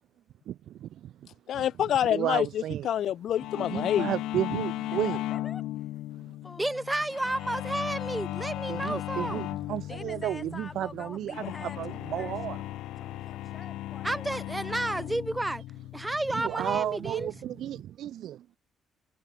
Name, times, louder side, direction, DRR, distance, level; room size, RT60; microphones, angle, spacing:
voice 1, 0.5-1.1 1.6-1.7 2.1-2.9 3.5-5.2 8.7-11.3 11.8-12.6 16.3-18.4, right 12 dB, 75° right, 0.4 m, -33 dB
voice 2, 1.5-4.1, left 10 dB, 70° left, 0.4 m, -27 dB
sound 1, 3.4-17.8, left 15 dB, 90° left, 1.1 m, -37 dB
voice 3, 4.9-5.8 6.4-6.8 9.8-12.6 13.0-14.4, left 3 dB, 25° left, 5.6 m, -47 dB
voice 4, 6.6-9.5 14.0-15.6 15.9-17.3, right 1 dB, 10° right, 1.2 m, -31 dB
cardioid pair, 90°, 0 cm